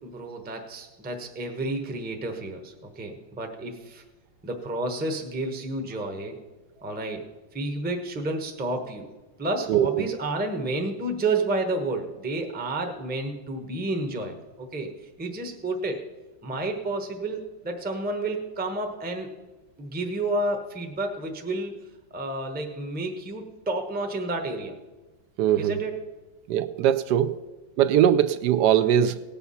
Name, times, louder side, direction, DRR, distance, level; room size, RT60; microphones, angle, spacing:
voice 1, 0.0-4.0 4.4-6.4 6.8-7.2 7.5-9.1 9.4-16.0 16.4-19.3 19.8-21.7 22.1-24.7 25.6-26.2, right 2 dB, 5° right, 4 dB, 0.7 m, -30 dB
voice 2, 9.7-10.0 25.4-25.8 26.5-27.3 27.8-29.1, right 10 dB, 75° right, 12 dB, 1.0 m, -21 dB
18.0 x 7.0 x 5.6 m, 1.2 s
omnidirectional pair, 2.1 m